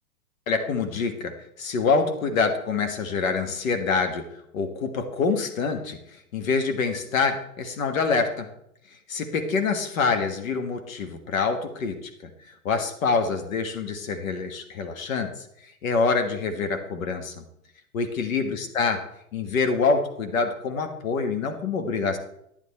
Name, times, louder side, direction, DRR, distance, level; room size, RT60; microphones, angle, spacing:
voice 1, 0.5-4.3 4.5-6.0 6.3-8.5 9.1-12.1 12.5-15.4 15.8-17.4 17.9-19.0 19.3-22.2, left 4 dB, 60° left, 6 dB, 1.7 m, -26 dB
9.9 x 9.8 x 4.3 m, 0.76 s
hypercardioid pair, 120°, 45 cm